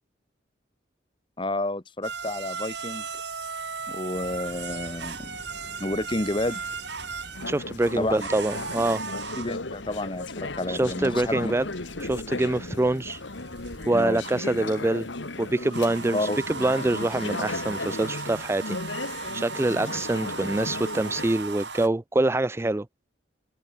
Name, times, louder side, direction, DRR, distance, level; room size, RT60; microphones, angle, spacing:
voice 1, 1.4-3.1 3.9-5.4 5.8-6.6 7.9-8.3 9.4-11.5 13.9-14.2 16.1-16.4 19.9-20.0, left 1 dB, 25° left, 1.3 m, -30 dB
sound 1, 2.0-21.9, right 5 dB, 65° right, 3.5 m, -38 dB
sound 2, 4.1-13.9, left 1 dB, 45° left, 5.1 m, -48 dB
Conversation / Chatter, 7.3-21.3, left 2 dB, 75° left, 2.0 m, -36 dB
voice 2, 7.5-9.0 10.7-11.7 12.0-13.2 13.9-15.1 15.4-19.0 19.3-22.9, right 2 dB, 15° right, 0.3 m, -25 dB
head